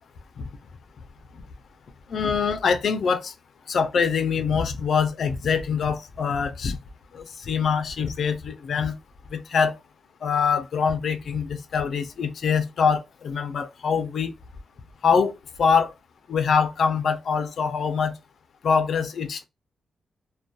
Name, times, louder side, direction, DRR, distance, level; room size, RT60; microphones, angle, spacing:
voice 1, 2.1-3.3 3.7-6.8 7.1-8.9 9.3-9.8 10.2-14.3 15.0-15.3 15.6-15.9 16.3-18.1 18.6-19.5, left 6 dB, 60° left, 0.4 m, -24 dB
2.3 x 2.1 x 2.5 m
wide cardioid pair, 130°, 0 cm